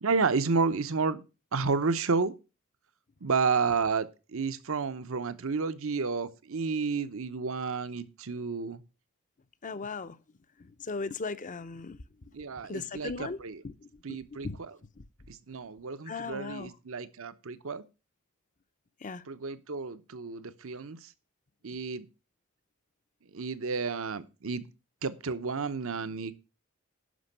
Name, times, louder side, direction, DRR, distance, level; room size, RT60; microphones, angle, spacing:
voice 1, 0.0-1.2 1.5-2.3 3.2-8.8 12.3-13.6 14.0-14.5 15.3-17.8 19.3-21.1 21.6-22.1 23.3-24.6 25.0-26.3, right 4 dB, 70° right, 0.9 m, -31 dB
voice 2, 9.6-10.2 10.6-12.0 12.7-13.4 13.6-14.6 15.0-15.1 16.1-16.7 19.0-19.2, left 4 dB, 35° left, 0.7 m, -38 dB
11.5 x 5.3 x 6.6 m
head